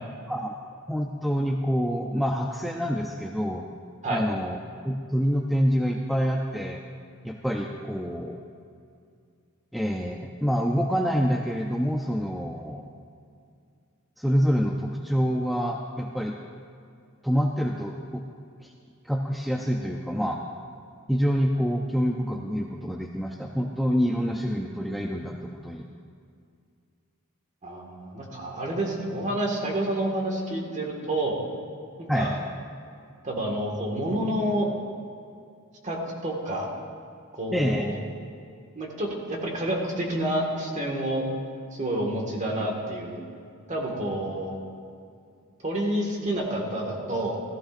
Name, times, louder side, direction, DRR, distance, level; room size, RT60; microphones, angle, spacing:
voice 1, 0.3-0.6 0.9-3.7 4.1-4.6 4.8-6.8 7.2-8.4 9.7-12.9 14.2-16.4 17.2-18.2 18.6-18.7 19.0-20.4 21.1-25.9 32.1-32.4 37.5-37.9, equal, ahead, 1 dB, 0.4 m, -26 dB
voice 2, 27.6-31.4 32.0-32.4 33.2-34.7 35.8-36.7 37.4-38.0 38.7-41.2 41.7-43.2 43.7-44.6 45.6-47.4, right 1 dB, 35° right, -1 dB, 1.8 m, -29 dB
15.5 x 14.0 x 2.6 m, 2.3 s
head